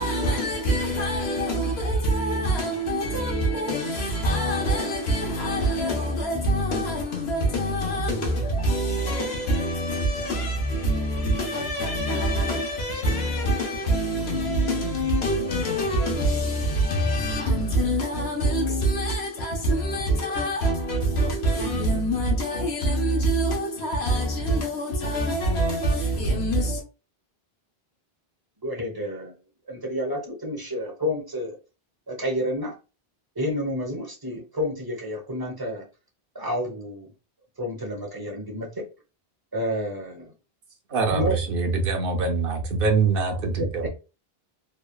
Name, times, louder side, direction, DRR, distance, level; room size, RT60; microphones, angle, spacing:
voice 1, 0.0-26.8, right 1 dB, 85° left, 1.1 m, -25 dB
voice 2, 28.6-29.3 29.7-31.6 32.1-32.7 33.4-35.8 36.3-37.1 37.6-38.8 39.5-40.3 41.1-41.4 43.6-43.9, equal, 25° right, 0.8 m, -30 dB
voice 3, 40.9-43.9, right 4 dB, 65° right, 0.9 m, -24 dB
3.2 x 2.2 x 2.2 m
omnidirectional pair, 1.0 m